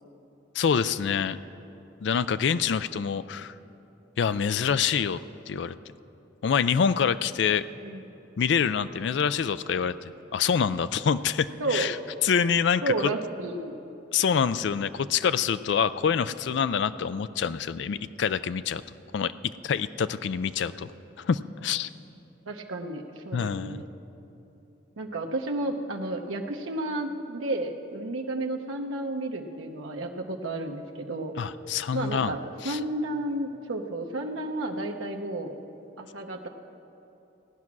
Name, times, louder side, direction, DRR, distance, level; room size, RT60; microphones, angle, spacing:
voice 1, 0.5-1.4 2.0-3.5 4.2-5.2 5.5-5.8 6.4-7.6 8.4-12.0 12.2-12.8 14.1-18.8 19.1-19.3 19.6-20.9 21.2-21.9 23.3-23.8 31.4-32.3 32.6-32.8, left 7 dB, 60° left, 14 dB, 0.3 m, -26 dB
voice 2, 11.6-12.0 12.8-13.7 22.5-23.8 25.0-31.3 31.9-32.4 32.6-35.6 36.0-36.5, right 2 dB, 85° right, 2 dB, 0.8 m, -32 dB
16.5 x 9.5 x 6.0 m, 2.9 s
head